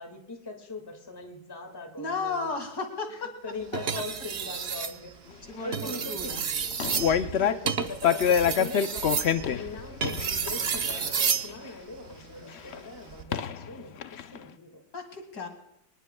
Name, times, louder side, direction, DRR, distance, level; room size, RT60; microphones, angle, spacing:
voice 1, 0.0-2.6 3.1-6.4 7.0-14.8, left 2 dB, 15° left, 3 dB, 1.8 m, -41 dB
voice 2, 2.0-3.3 5.5-6.4 7.0-7.2 14.9-15.5, left 4 dB, 65° left, 4 dB, 2.7 m, -34 dB
sound 1, 3.7-5.0 5.6-11.5 13.0-13.2, right 6 dB, 50° right, 0.9 m, -31 dB
sound 2, 6.7-7.8 8.0-11.7 12.7-12.8 13.3-13.7 14.0-14.4, left 8 dB, 80° left, 0.5 m, -26 dB
25.0 x 19.5 x 2.3 m, 0.79 s
omnidirectional pair, 1.9 m